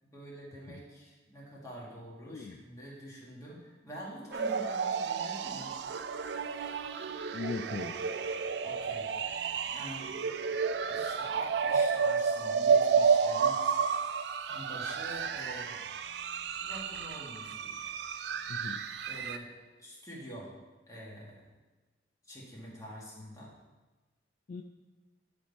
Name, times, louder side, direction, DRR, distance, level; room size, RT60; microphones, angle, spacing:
voice 1, 0.0-5.7 8.6-9.1 9.7-10.1 10.9-13.8 14.5-15.8 16.6-17.7 19.1-19.5 19.8-20.5 20.9-21.4 22.2-23.5, equal, 20° left, -5 dB, 1.7 m, -46 dB
voice 2, 2.3-2.6 7.3-8.0 18.5-18.8 24.5-24.6, left 4 dB, 50° left, 4 dB, 0.3 m, -39 dB
sound 1, 4.3-19.4, right 6 dB, 65° right, 0.3 m, -31 dB
10.0 x 3.5 x 4.0 m, 1.2 s
head